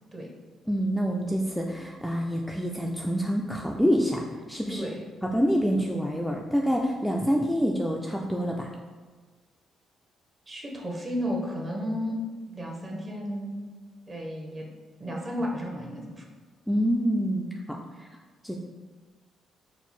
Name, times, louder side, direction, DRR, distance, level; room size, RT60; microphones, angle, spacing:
voice 1, 0.7-4.2 4.5-4.9 5.2-8.7 16.7-17.8 18.4-18.6, equal, ahead, -1 dB, 0.3 m, -26 dB
voice 2, 4.7-5.0 10.5-13.7 14.1-14.7 15.0-16.2, equal, 30° right, -1 dB, 0.9 m, -33 dB
4.4 x 2.0 x 4.2 m, 1.4 s
cardioid pair, 90°, 0 cm